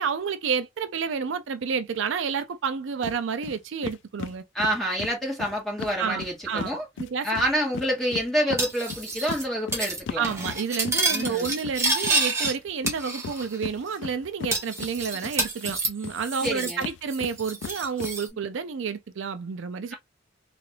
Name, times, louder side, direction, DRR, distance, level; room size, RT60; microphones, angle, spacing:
voice 1, 0.0-4.4 6.0-7.3 10.2-19.9, right 6 dB, 70° right, 0.4 m, -30 dB
sound 1, 3.0-3.2 3.4-3.6 3.8-6.7 7.0-15.4 15.6-18.1, left 6 dB, 65° left, 0.4 m, -37 dB
voice 2, 4.5-6.9 7.2-10.2 11.1-11.6 16.4-16.9, equal, ahead, 1.8 m, -27 dB
Cutlery silverware, 8.6-9.4 9.7-10.0 10.2-12.5 12.9-13.6 13.9-14.0 14.5-16.8 17.1-18.3, right 2 dB, 15° right, 1.2 m, -29 dB
3.7 x 2.4 x 3.2 m
head